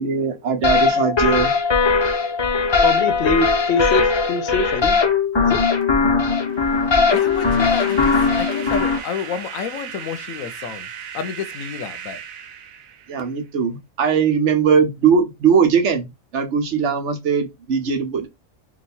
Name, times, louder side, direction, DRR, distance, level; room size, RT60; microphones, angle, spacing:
voice 1, 0.0-1.5 13.1-16.1 16.3-18.3, right 6 dB, 65° right, 1.0 m, -19 dB
sound 1, 0.6-9.0, left 4 dB, 40° left, 0.4 m, -19 dB
voice 2, 2.8-5.0 5.4-5.6, left 3 dB, 60° left, 0.8 m, -23 dB
sound 2, 6.4-13.4, right 8 dB, 90° right, 1.0 m, -37 dB
voice 3, 7.1-10.9 11.1-12.2, left 7 dB, 90° left, 1.1 m, -30 dB
3.1 x 2.3 x 4.2 m
omnidirectional pair, 1.4 m